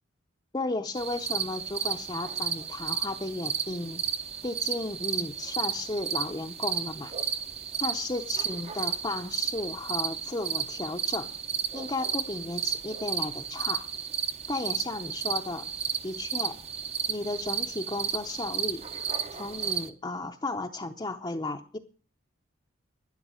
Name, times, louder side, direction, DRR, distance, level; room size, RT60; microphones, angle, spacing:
voice 1, 0.5-4.0 4.4-7.1 7.8-11.3 11.7-13.9 14.5-15.7 16.0-16.6 17.1-18.8 19.3-21.8, left 2 dB, 20° left, 3 dB, 0.6 m, -34 dB
sound 1, 0.9-19.9, right 7 dB, 30° right, 0.7 m, -33 dB
12.5 x 10.5 x 6.3 m, 0.41 s
head